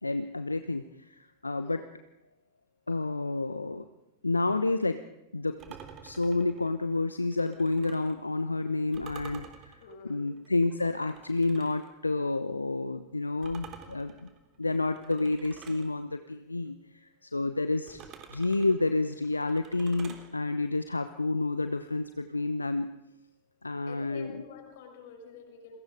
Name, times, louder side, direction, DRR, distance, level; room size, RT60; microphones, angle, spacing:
voice 1, 0.0-1.8 2.9-3.9 4.2-5.0 5.3-5.6 6.0-14.3 14.6-18.0 18.3-22.9 23.6-24.4, left 2 dB, 80° left, 10 dB, 1.0 m, -30 dB
voice 2, 1.5-2.0 9.8-10.3 23.9-25.8, left 6 dB, 55° left, 4 dB, 6.2 m, -48 dB
sound 1, 5.6-8.2 8.9-11.9 13.4-15.9 17.9-20.3, right 7 dB, 35° right, 3.4 m, -49 dB
29.5 x 22.5 x 5.1 m, 0.85 s
figure-of-eight pair, 90°, 0 cm